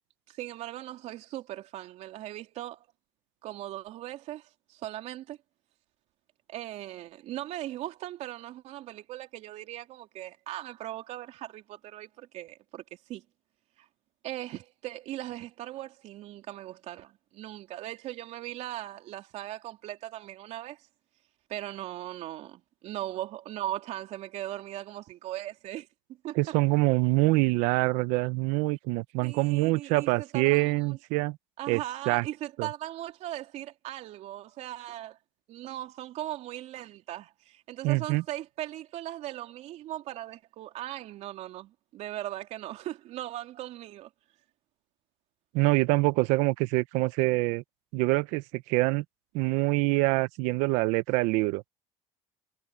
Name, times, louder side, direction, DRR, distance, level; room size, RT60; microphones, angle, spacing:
voice 1, 0.3-2.9 3.4-5.4 6.5-13.2 13.8-13.9 14.2-20.9 21.5-25.9 26.2-26.6 29.2-31.0 31.6-35.2 35.5-44.1 47.3-47.4, right 14 dB, 65° right, 3.4 m, -39 dB
voice 2, 26.4-31.4 31.7-31.8 32.1-32.3 32.6-32.7 37.8-38.2 45.5-47.6 47.9-49.0 49.3-51.6, right 22 dB, 80° right, 0.9 m, -25 dB
supercardioid pair, 100°, 12 cm